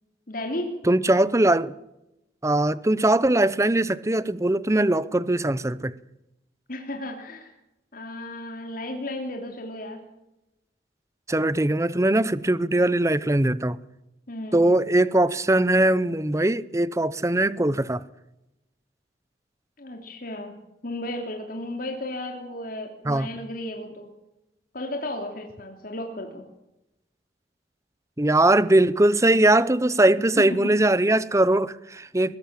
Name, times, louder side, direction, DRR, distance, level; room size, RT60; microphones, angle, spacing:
voice 1, 0.3-0.8 6.7-7.5 7.9-10.0 14.3-14.7 19.8-20.6 20.8-24.1 24.7-26.4 30.4-30.7, left 1 dB, 50° left, 3.0 m, -34 dB
voice 2, 0.8-1.7 2.4-6.0 11.3-13.8 14.5-18.0 23.0-23.3 28.2-32.4, right 1 dB, 15° right, 0.7 m, -21 dB
22.5 x 17.0 x 7.5 m
head